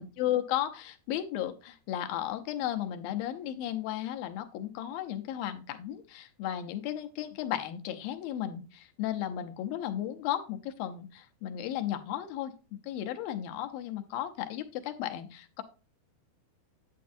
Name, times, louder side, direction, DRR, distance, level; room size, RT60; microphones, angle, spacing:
voice 1, 0.0-15.6, left 11 dB, 75° left, 6 dB, 2.4 m, -34 dB
9.5 x 8.3 x 2.7 m, 0.32 s
omnidirectional pair, 4.7 m